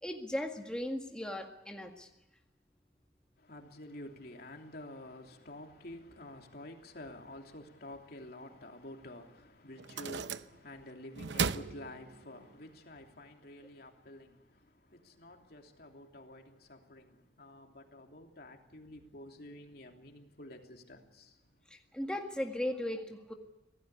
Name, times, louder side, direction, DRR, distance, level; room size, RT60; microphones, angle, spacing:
voice 1, 0.0-2.1 21.7-23.3, left 1 dB, 5° left, 1.9 m, -37 dB
voice 2, 3.4-21.6, left 1 dB, 60° left, 3.1 m, -50 dB
sound 1, 9.0-9.1 9.8-10.8 11.2-12.5, right 5 dB, 90° right, 0.9 m, -36 dB
25.5 x 18.0 x 8.3 m
head